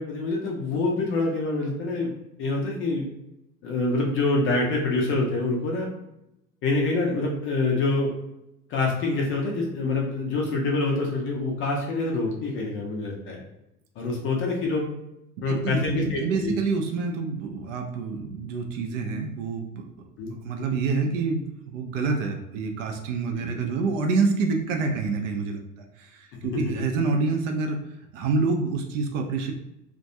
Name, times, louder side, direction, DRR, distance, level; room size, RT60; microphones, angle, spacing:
voice 1, 0.0-2.1 2.4-3.1 3.6-5.9 6.6-8.1 8.7-13.4 14.0-14.8 15.4-16.5 20.2-20.3 23.3-23.5, left 3 dB, 25° left, -1 dB, 0.5 m, -26 dB
voice 2, 15.5-19.9 20.3-25.6 26.0-27.8 28.1-29.5, right 4 dB, 55° right, 4 dB, 0.5 m, -27 dB
2.3 x 2.2 x 2.7 m, 0.87 s
figure-of-eight pair, 75°, 48 cm